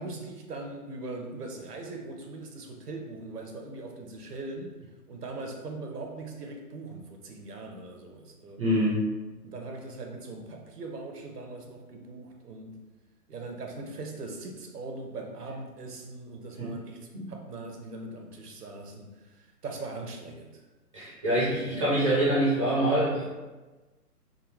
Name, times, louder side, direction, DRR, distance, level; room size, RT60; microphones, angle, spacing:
voice 1, 0.0-4.8 5.1-8.6 9.4-12.8 13.3-20.6, right 2 dB, 75° right, 2 dB, 0.8 m, -40 dB
voice 2, 8.6-9.0 16.6-16.7 17.1-17.2 20.9-23.2, right 1 dB, 20° right, -8 dB, 0.6 m, -25 dB
3.7 x 2.2 x 3.2 m, 1.2 s
figure-of-eight pair, 135°, 47 cm